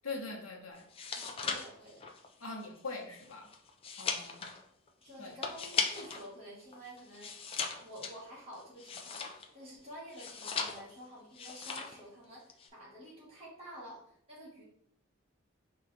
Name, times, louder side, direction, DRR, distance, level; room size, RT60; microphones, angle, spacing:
voice 1, 0.0-0.8 2.4-3.5 4.0-4.5 5.2-5.3, left 3 dB, 90° left, 1 dB, 0.9 m, -42 dB
sound 1, 0.8-6.3 6.6-9.6 10.1-11.0 11.3-12.0 12.3-12.7, left 5 dB, 25° left, 0.3 m, -38 dB
voice 2, 1.1-2.1 5.0-7.3 7.8-14.6, equal, 30° right, -7 dB, 1.6 m, -50 dB
4.7 x 2.3 x 3.9 m, 0.70 s
head